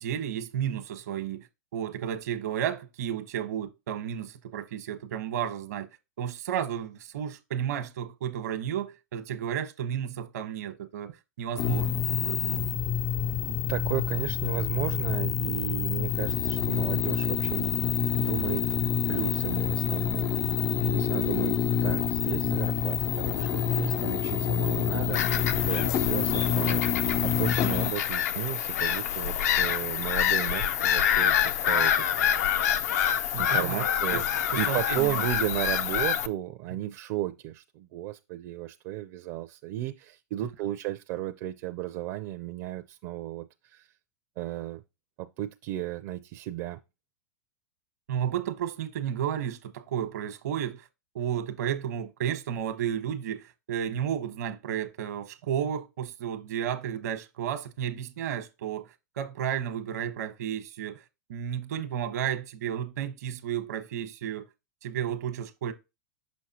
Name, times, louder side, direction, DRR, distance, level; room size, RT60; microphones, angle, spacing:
voice 1, 0.0-1.5 1.7-5.9 6.2-12.8 20.8-21.1 33.3-34.2 34.7-35.2 36.8-36.9 48.1-50.9 51.1-61.0 61.3-64.5 64.8-65.7, right 9 dB, 80° right, 1.1 m, -32 dB
sound 1, 11.6-27.9, left 9 dB, 35° left, 0.3 m, -27 dB
voice 2, 13.5-17.9 18.2-18.7 19.1-20.4 20.9-32.5 33.4-34.2 34.6-43.9 44.4-44.8 45.2-46.8, right 14 dB, 50° right, 0.5 m, -34 dB
Bird vocalization bird call bird song / Gull seagull, 25.1-36.3, left 9 dB, 75° left, 0.6 m, -27 dB
6.2 x 5.7 x 2.9 m
supercardioid pair, 140°, 9 cm